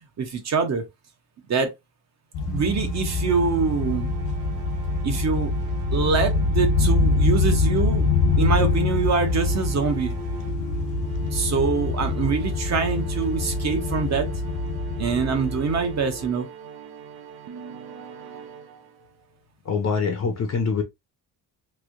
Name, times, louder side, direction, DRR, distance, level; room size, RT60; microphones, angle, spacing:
voice 1, 0.2-0.8 1.5-1.7 2.5-4.1 5.0-5.5 5.9-8.1 8.4-10.1 11.3-14.3 15.0-16.5, right 5 dB, 40° right, 0.9 m, -24 dB
sound 1, 2.3-16.2, left 3 dB, 75° left, 1.1 m, -25 dB
sound 2, 2.5-19.2, right 7 dB, 65° right, 0.6 m, -41 dB
sound 3, 8.1-16.3, left 5 dB, 5° right, 0.5 m, -40 dB
voice 2, 19.7-20.8, left 5 dB, 40° left, 0.7 m, -24 dB
3.2 x 2.7 x 2.5 m
cardioid pair, 140°, 41 cm